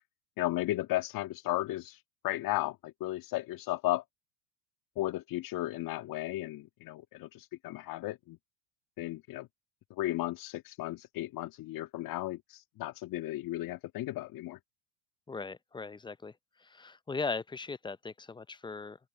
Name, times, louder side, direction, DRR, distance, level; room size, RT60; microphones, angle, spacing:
voice 1, 0.4-4.0 5.0-8.4 9.0-9.5 10.0-14.6, left 16 dB, 50° left, 1.9 m, -35 dB
voice 2, 15.3-16.3 16.6-19.0, left 4 dB, 10° left, 0.6 m, -38 dB
open air
hypercardioid pair, 90°, 44 cm